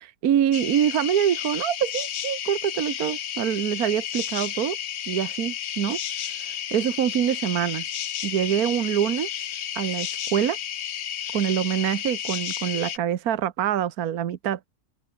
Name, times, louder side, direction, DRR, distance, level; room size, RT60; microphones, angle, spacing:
voice 1, 0.0-4.8 5.1-6.0 6.4-7.8 8.2-9.3 9.7-10.6 11.3-14.6, right 10 dB, 65° right, 1.5 m, -25 dB
sound 1, 0.5-13.0, left 10 dB, 55° left, 0.9 m, -32 dB
open air
omnidirectional pair, 1.7 m